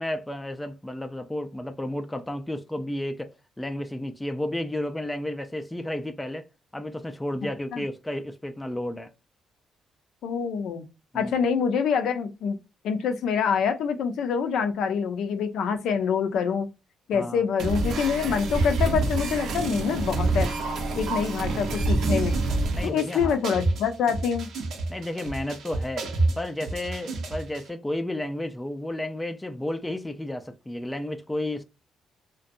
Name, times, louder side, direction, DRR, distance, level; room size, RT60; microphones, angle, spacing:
voice 1, 0.0-6.5 6.7-9.1 11.1-11.3 17.1-17.4 22.7-23.4 24.9-26.1 26.4-31.6, left 1 dB, 10° left, 0.3 m, -32 dB
voice 2, 10.2-10.9 11.1-12.6 12.8-16.7 17.1-20.5 20.9-22.4 22.8-24.5, left 6 dB, 75° left, 0.4 m, -26 dB
sound 1, 17.6-27.6, right 2 dB, 75° right, 0.6 m, -27 dB
2.5 x 2.2 x 2.5 m
cardioid pair, 90°, 0 cm